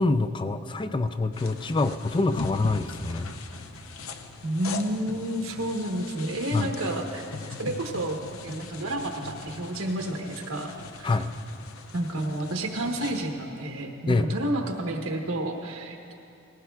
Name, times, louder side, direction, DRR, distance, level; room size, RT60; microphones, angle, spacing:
voice 1, 0.0-3.3 6.5-6.7 11.0-11.3 14.1-14.3, left 3 dB, 25° left, 9 dB, 0.3 m, -25 dB
sound 1, 1.3-13.2, left 4 dB, 80° left, 0.7 m, -40 dB
voice 2, 4.4-7.2 7.6-10.7 11.0-11.2 11.9-16.1, right 1 dB, 85° right, 1 dB, 1.0 m, -30 dB
19.0 x 16.0 x 2.3 m, 2.7 s
head